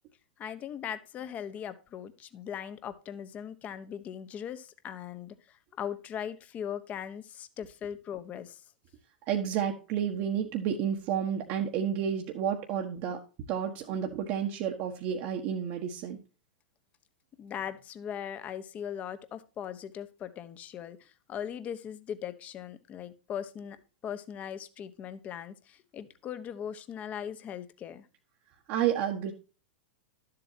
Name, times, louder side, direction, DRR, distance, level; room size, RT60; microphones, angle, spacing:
voice 1, 0.4-8.6 17.4-23.8 24.0-28.1, left 9 dB, 30° left, 12 dB, 1.1 m, -39 dB
voice 2, 9.3-13.2 13.5-16.2 28.7-29.3, right 9 dB, 45° right, 2 dB, 1.3 m, -30 dB
12.0 x 7.8 x 2.8 m, 0.34 s
figure-of-eight pair, 100°, 5 cm